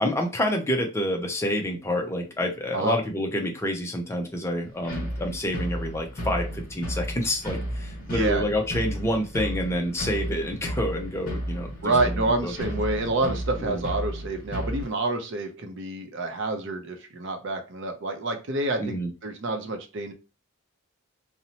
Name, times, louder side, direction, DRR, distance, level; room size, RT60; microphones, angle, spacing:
voice 1, 0.0-12.5 13.6-13.8 18.8-19.1, left 1 dB, 10° left, 2 dB, 0.4 m, -28 dB
sound 1, 4.8-14.9, equal, 40° left, 0.9 m, -33 dB
voice 2, 8.0-8.4 11.8-19.0 19.2-20.1, right 2 dB, 55° right, 5 dB, 0.5 m, -28 dB
2.7 x 2.0 x 2.8 m, 0.31 s
head